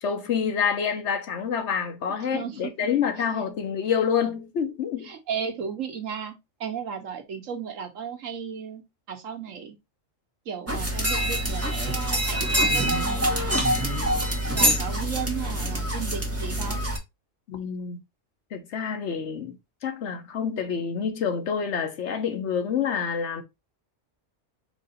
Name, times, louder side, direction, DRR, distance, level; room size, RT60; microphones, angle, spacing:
voice 1, 0.0-5.1 17.5-18.0 18.5-19.6 19.8-23.4, left 7 dB, 65° left, 1.1 m, -27 dB
voice 2, 2.1-2.7 3.2-3.3 5.0-6.3 6.6-8.8 9.1-9.8 10.4-13.9 14.5-16.8, right 7 dB, 80° right, 1.4 m, -35 dB
sound 1, 10.7-17.0, equal, 10° right, 1.1 m, -25 dB
4.8 x 2.6 x 4.1 m
omnidirectional pair, 1.3 m